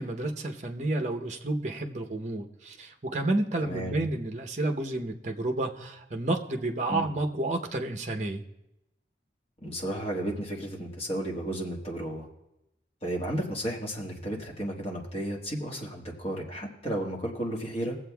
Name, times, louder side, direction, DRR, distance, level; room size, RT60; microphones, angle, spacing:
voice 1, 0.0-8.4, right 2 dB, 40° right, 3 dB, 0.8 m, -30 dB
voice 2, 3.6-4.0 6.9-7.1 9.6-12.3 13.0-18.0, right 1 dB, 35° left, -1 dB, 1.4 m, -33 dB
20.5 x 7.7 x 2.3 m, 0.90 s
head